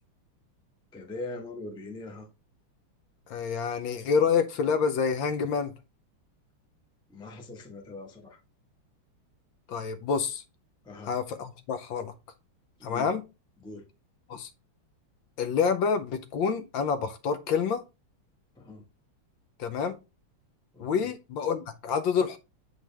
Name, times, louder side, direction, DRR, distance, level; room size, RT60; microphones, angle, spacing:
voice 1, 0.9-2.3 7.1-8.4 10.8-11.1 12.8-13.1 13.6-13.9 18.6-18.8 20.7-21.1, left 2 dB, 5° left, 0.5 m, -41 dB
voice 2, 3.3-5.7 9.7-10.4 11.0-12.1 12.8-13.2 14.3-14.5 15.4-17.8 19.6-20.0 20.8-22.4, left 6 dB, 70° left, 1.3 m, -27 dB
8.0 x 4.5 x 3.3 m
omnidirectional pair, 2.4 m